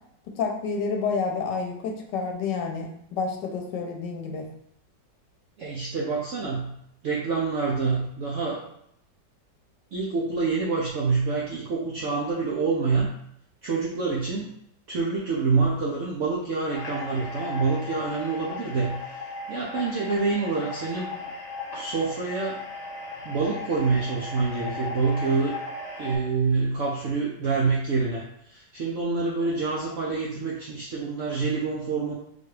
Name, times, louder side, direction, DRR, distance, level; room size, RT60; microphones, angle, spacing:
voice 1, 0.3-4.5 29.2-29.6, left 5 dB, 80° left, 2 dB, 1.3 m, -29 dB
voice 2, 5.6-6.7 7.0-8.6 9.9-13.1 13.6-14.5 14.9-19.0 19.5-21.1 21.7-22.6 23.2-25.5 26.0-32.1, right 4 dB, 75° right, -4 dB, 0.7 m, -26 dB
sound 1, 16.7-26.2, left 2 dB, 35° left, 1.5 m, -37 dB
4.0 x 2.3 x 3.2 m, 0.72 s
omnidirectional pair, 1.9 m